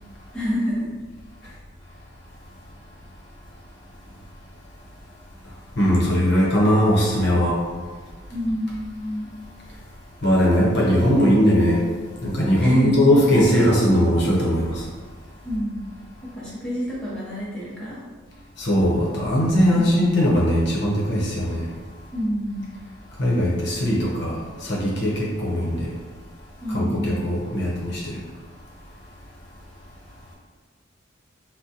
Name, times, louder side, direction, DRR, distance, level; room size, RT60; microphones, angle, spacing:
voice 1, 0.3-0.9 1.4-1.6 8.3-9.3 12.6-13.1 15.4-15.8 16.3-18.0 19.7-20.1 22.1-22.7 26.6-27.3, equal, 5° left, -9 dB, 0.6 m, -28 dB
voice 2, 5.8-7.6 10.2-11.8 12.2-14.8 18.6-21.7 23.2-25.9 26.7-28.2, equal, 60° left, -5 dB, 0.7 m, -20 dB
3.7 x 2.1 x 2.7 m, 1.5 s
head